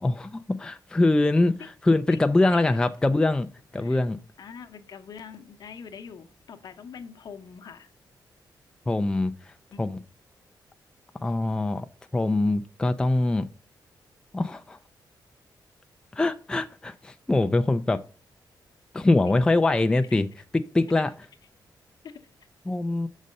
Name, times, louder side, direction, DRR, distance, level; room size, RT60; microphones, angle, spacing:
voice 1, 0.0-3.5 3.7-4.2 8.9-9.5 9.8-10.0 11.2-11.9 12.1-13.5 14.3-14.8 16.1-18.0 18.9-20.3 20.5-21.1 22.7-23.1, left 2 dB, 10° left, 0.3 m, -23 dB
voice 2, 4.4-7.9 9.7-9.8 19.7-20.2 22.0-22.2, left 6 dB, 60° left, 0.8 m, -44 dB
6.4 x 4.1 x 6.4 m
wide cardioid pair, 145°, 8 cm